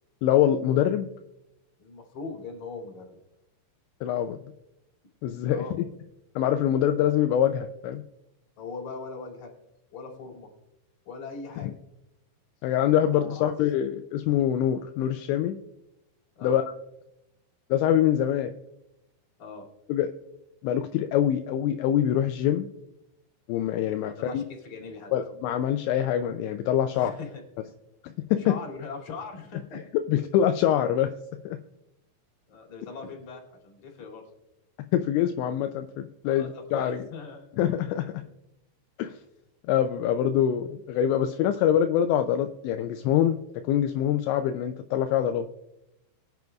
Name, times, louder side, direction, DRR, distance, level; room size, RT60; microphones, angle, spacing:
voice 1, 0.2-1.1 4.0-4.4 5.2-5.6 6.4-8.0 11.6-11.7 12.6-15.6 16.4-16.6 17.7-18.5 19.9-20.1 20.6-22.7 23.5-24.4 25.1-27.1 28.3-28.6 29.7-31.1 31.5-31.6 34.9-37.1 37.6-38.1 39.0-39.2 39.7-43.4 43.6-45.5, left 10 dB, 85° left, 7 dB, 2.6 m, -24 dB
voice 2, 1.8-3.2 5.4-5.8 6.9-7.0 8.6-9.5 9.9-10.5 11.0-11.8 13.1-13.5 16.4-16.6 19.4-19.7 24.0-25.1 26.9-27.7 28.0-29.8 32.5-34.2 36.2-37.6, left 4 dB, 45° left, -1 dB, 3.5 m, -40 dB
22.5 x 9.2 x 2.3 m, 0.90 s
omnidirectional pair, 5.5 m